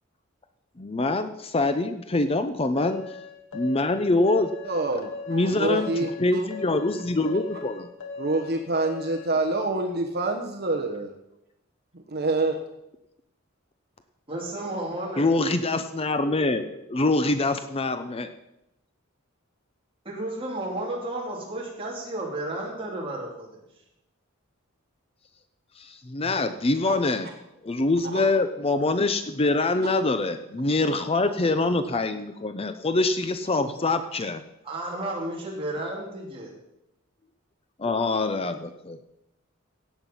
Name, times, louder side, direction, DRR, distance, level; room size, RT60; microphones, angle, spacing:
voice 1, 0.8-3.0 3.5-4.5 5.3-5.9 6.2-7.9 15.2-18.3 25.8-27.3 27.6-34.4 37.8-39.0, left 2 dB, 30° left, 9 dB, 0.6 m, -24 dB
sound 1, 2.8-9.3, left 4 dB, 85° left, 2.4 m, -39 dB
voice 2, 4.6-6.5 8.2-11.1 12.1-12.6 26.2-26.4 26.8-27.0 28.1-28.4, right 2 dB, 50° right, 4 dB, 1.2 m, -27 dB
voice 3, 14.3-15.3 20.1-23.6 34.6-36.5, right 1 dB, 25° right, -3 dB, 3.4 m, -32 dB
17.0 x 7.9 x 5.6 m, 0.87 s
head